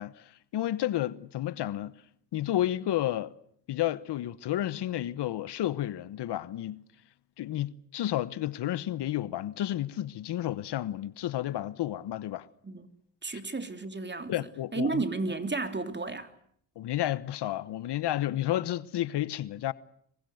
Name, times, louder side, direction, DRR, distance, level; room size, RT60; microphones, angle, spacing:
voice 1, 0.0-1.9 2.3-3.3 3.7-6.8 7.4-12.5 14.3-15.0 16.8-19.7, left 13 dB, 70° left, 1.2 m, -31 dB
voice 2, 13.2-14.3 14.7-16.3, right 3 dB, 25° right, 3.2 m, -32 dB
26.0 x 23.5 x 7.9 m
supercardioid pair, 70°, 43 cm